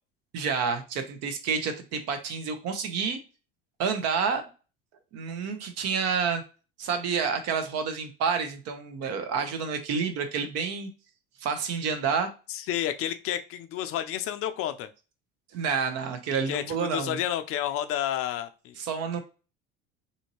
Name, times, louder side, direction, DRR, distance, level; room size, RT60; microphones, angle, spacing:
voice 1, 0.3-3.2 3.8-4.4 5.1-6.4 6.8-10.9 11.4-12.3 15.5-17.2 18.8-19.2, right 6 dB, 55° right, 6 dB, 0.8 m, -29 dB
voice 2, 12.5-14.9 16.5-18.8, left 11 dB, 50° left, 10 dB, 0.4 m, -30 dB
2.7 x 2.6 x 2.9 m, 0.33 s
hypercardioid pair, 70°, 30 cm